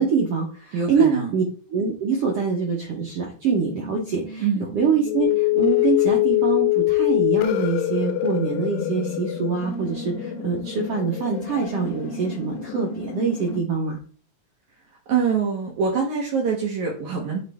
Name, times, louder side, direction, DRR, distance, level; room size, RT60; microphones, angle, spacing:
voice 1, 0.0-1.4 1.7-4.4 4.7-14.0, right 5 dB, 85° right, -1 dB, 1.3 m, -24 dB
voice 2, 0.7-1.3 4.4-4.6 15.1-17.4, right 6 dB, 65° right, -1 dB, 2.1 m, -24 dB
sound 1, 3.6-13.6, left 14 dB, 75° left, 2.4 m, -25 dB
9.3 x 3.2 x 3.5 m, 0.40 s
omnidirectional pair, 4.4 m